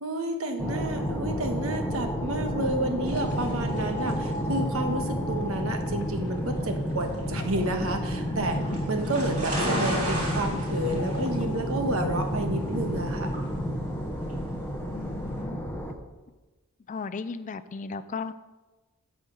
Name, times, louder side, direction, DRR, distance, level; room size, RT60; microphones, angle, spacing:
voice 1, 0.0-8.6 8.9-13.3, right 1 dB, 65° right, 5 dB, 1.3 m, -30 dB
sound 1, 0.6-15.9, equal, 10° left, 0.8 m, -30 dB
sound 2, 2.9-13.5, left 3 dB, 55° left, 0.8 m, -45 dB
sound 3, 3.0-15.4, right 1 dB, 35° right, 3.0 m, -37 dB
voice 2, 14.9-15.6 16.9-18.3, left 4 dB, 35° left, 12 dB, 0.4 m, -37 dB
8.2 x 5.7 x 7.6 m, 1.2 s
head